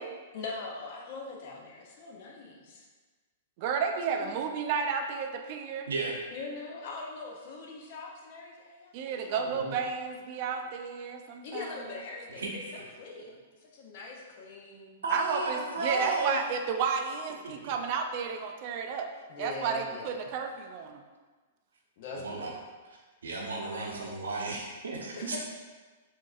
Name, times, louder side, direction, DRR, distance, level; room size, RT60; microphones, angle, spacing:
voice 1, 0.3-2.9 4.2-4.3 6.3-9.6 11.4-13.4 13.7-15.0 19.3-20.3 22.0-22.6 25.2-25.4, left 3 dB, 55° left, -1 dB, 0.7 m, -42 dB
voice 2, 3.6-5.9 8.9-11.7 13.2-13.4 15.1-19.1 19.4-21.0, right 6 dB, 50° right, 5 dB, 0.3 m, -32 dB
voice 3, 5.9-6.2 9.4-9.8 12.4-12.5 12.7-12.8 15.0-16.4 17.6-17.7 22.1-22.5 23.2-25.4, right 3 dB, 85° right, -1 dB, 0.7 m, -33 dB
3.8 x 2.6 x 2.4 m, 1.4 s
hypercardioid pair, 125°, 0 cm